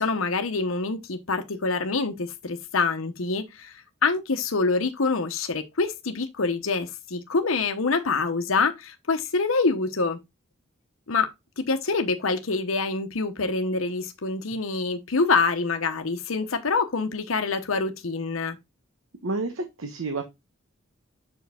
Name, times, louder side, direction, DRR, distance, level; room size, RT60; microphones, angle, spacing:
voice 1, 0.0-10.2 11.1-11.3 11.6-18.6, left 4 dB, 90° left, 1.0 m, -26 dB
voice 2, 19.2-20.2, right 3 dB, 90° right, 1.0 m, -30 dB
7.0 x 4.9 x 3.4 m
head